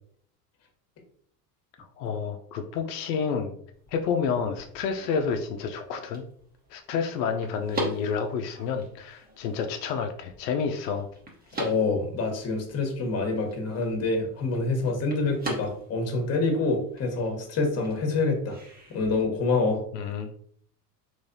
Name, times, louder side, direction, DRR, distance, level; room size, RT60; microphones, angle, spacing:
voice 1, 2.0-3.5 3.9-6.2 6.7-11.1 19.9-20.3, left 6 dB, 85° left, 5 dB, 0.6 m, -29 dB
sound 1, 3.7-19.2, right 1 dB, 20° right, 1.0 m, -42 dB
voice 2, 11.6-18.6 18.9-19.8, left 3 dB, 30° left, 3 dB, 1.1 m, -26 dB
3.2 x 3.1 x 2.7 m, 0.63 s
hypercardioid pair, 95°, 48 cm